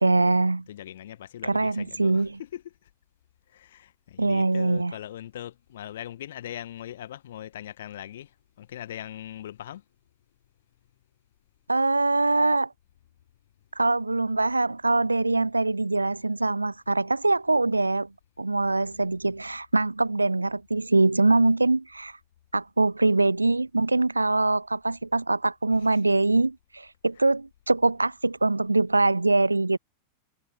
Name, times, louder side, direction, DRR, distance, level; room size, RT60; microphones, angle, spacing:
voice 1, 0.0-0.6 1.4-2.4 4.2-5.0 11.7-12.7 13.8-18.1 18.4-22.1 22.5-29.8, right 2 dB, 80° right, 0.6 m, -23 dB
voice 2, 0.7-2.7 3.5-8.3 8.6-9.8 25.8-25.9, left 11 dB, 60° left, 1.6 m, -40 dB
figure-of-eight pair, 90°, 0 cm